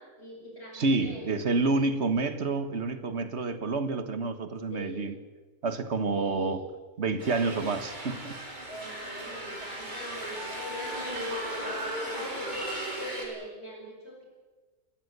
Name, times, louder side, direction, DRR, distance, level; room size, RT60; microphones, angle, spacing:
voice 1, 0.0-1.5 3.8-4.0 4.7-5.1 6.1-6.7 8.7-14.2, equal, 50° left, -1 dB, 6.8 m, -42 dB
voice 2, 0.7-5.1 5.6-6.6 7.0-8.4, right 3 dB, 55° right, 10 dB, 1.7 m, -28 dB
sound 1, 7.2-13.3, right 1 dB, 35° right, 4.5 m, -36 dB
29.0 x 14.0 x 8.1 m, 1.3 s
omnidirectional pair, 1.4 m